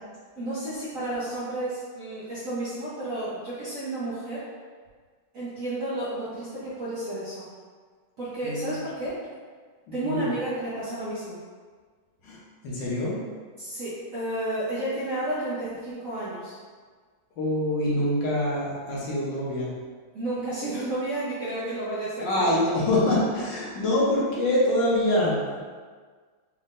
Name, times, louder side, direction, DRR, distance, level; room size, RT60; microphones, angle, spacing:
voice 1, 0.3-4.5 5.3-7.5 8.2-9.2 9.9-11.4 13.6-16.6 20.1-22.5, right 1 dB, 55° right, -10 dB, 0.9 m, -31 dB
voice 2, 12.6-13.2 17.4-19.7 22.2-25.6, left 1 dB, 65° left, -6 dB, 1.5 m, -25 dB
4.2 x 3.7 x 2.5 m, 1.5 s
omnidirectional pair, 2.3 m